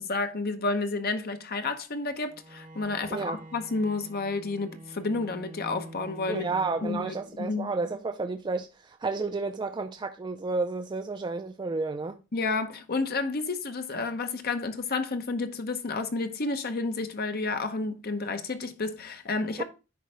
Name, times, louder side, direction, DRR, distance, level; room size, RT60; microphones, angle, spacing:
voice 1, 0.0-6.5 6.8-7.7 12.3-19.6, left 3 dB, 45° left, 0.8 m, -31 dB
Bowed string instrument, 2.2-7.6, right 1 dB, 40° right, 1.4 m, -46 dB
voice 2, 3.1-3.4 6.3-12.2 19.6-19.7, right 3 dB, 20° right, 0.3 m, -31 dB
10.5 x 4.0 x 3.3 m
head